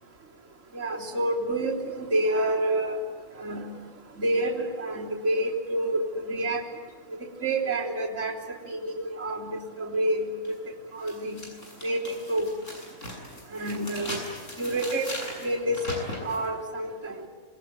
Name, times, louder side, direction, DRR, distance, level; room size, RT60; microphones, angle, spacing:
voice 1, 0.7-3.0 3.4-3.7 4.2-6.6 7.4-8.4 8.7-10.3 10.9-11.4 11.8-12.5 13.5-14.2 14.6-15.2 15.4-15.8 16.2-17.3, right 1 dB, 60° right, -4 dB, 3.8 m, -28 dB
sound 1, 10.4-10.5 11.0-16.5, left 1 dB, 55° left, 8.1 m, -39 dB
27.5 x 21.0 x 9.5 m, 1.4 s
omnidirectional pair, 1.5 m